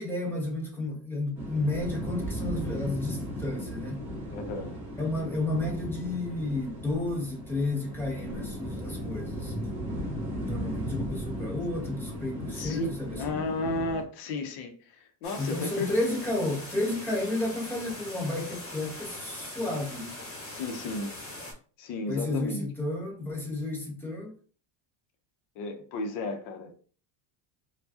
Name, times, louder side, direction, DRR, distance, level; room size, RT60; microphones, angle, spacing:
voice 1, 0.0-4.0 5.0-9.7 10.4-13.4 15.4-20.2 22.1-24.3, left 2 dB, 5° left, 0.7 m, -32 dB
sound 1, 1.4-14.0, equal, 15° right, 1.6 m, -36 dB
voice 2, 4.3-4.7 10.7-10.8 12.5-16.2 20.5-21.1 21.8-22.7 25.6-26.7, left 3 dB, 55° left, 0.8 m, -34 dB
sound 2, 15.2-21.5, left 1 dB, 25° left, 1.2 m, -41 dB
4.5 x 2.4 x 2.7 m
cardioid pair, 165°, 49 cm